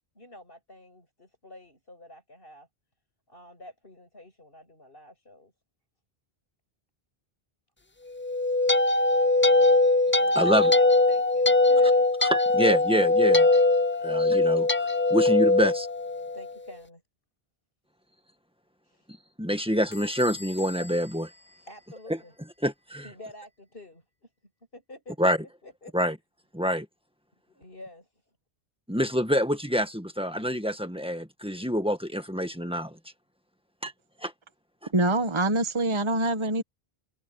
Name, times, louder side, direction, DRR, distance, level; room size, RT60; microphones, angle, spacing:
voice 1, 0.1-2.7 3.3-5.5 10.2-12.1 13.9-14.1 16.3-17.0 18.8-19.1 21.7-22.3 23.0-24.3 24.7-25.3 25.6-25.9 27.5-28.1 30.3-30.5, left 1 dB, 65° left, 8.3 m, -48 dB
sound 1, 8.2-16.5, left 2 dB, 20° left, 0.3 m, -21 dB
voice 2, 10.3-10.7 12.2-13.5 14.0-15.9 19.4-21.3 22.6-23.0 25.2-25.4 25.9-26.2 26.5-26.9 28.9-33.0 33.8-33.9 34.2-34.3, equal, 5° right, 1.6 m, -26 dB
Bell / Squeak, 19.9-22.4, left 4 dB, 35° left, 2.1 m, -46 dB
voice 3, 34.9-36.6, right 2 dB, 30° right, 1.4 m, -25 dB
omnidirectional pair, 1.0 m